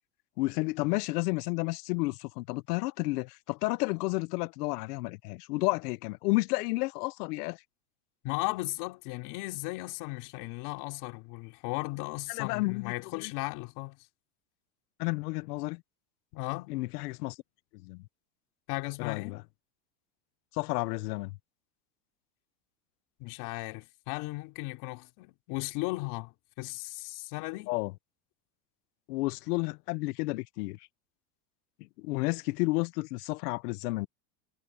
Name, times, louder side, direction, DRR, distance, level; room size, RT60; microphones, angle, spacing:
voice 1, 0.4-7.6 12.3-13.3 15.0-15.8 16.7-17.4 17.8-18.0 19.0-19.4 20.5-21.4 27.7-27.9 29.1-30.8 32.0-34.1, left 23 dB, 70° left, 0.8 m, -31 dB
voice 2, 8.2-14.0 16.3-16.7 18.7-19.4 23.2-27.7, left 23 dB, 50° left, 4.0 m, -36 dB
supercardioid pair, 155°, 49 cm